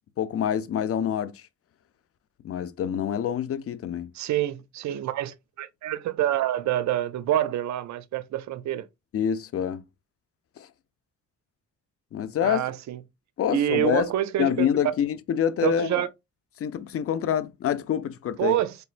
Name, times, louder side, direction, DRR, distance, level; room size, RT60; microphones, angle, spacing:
voice 1, 0.2-1.4 2.4-4.1 9.1-9.8 10.6-10.7 12.1-12.6 13.4-14.1 14.4-15.9 16.6-18.6, left 9 dB, 50° left, 0.6 m, -26 dB
voice 2, 4.1-8.9 12.4-13.0 13.5-14.9 15.6-16.1 18.4-18.8, right 12 dB, 65° right, 0.5 m, -27 dB
4.4 x 3.3 x 2.5 m
cardioid pair, 90°, 30 cm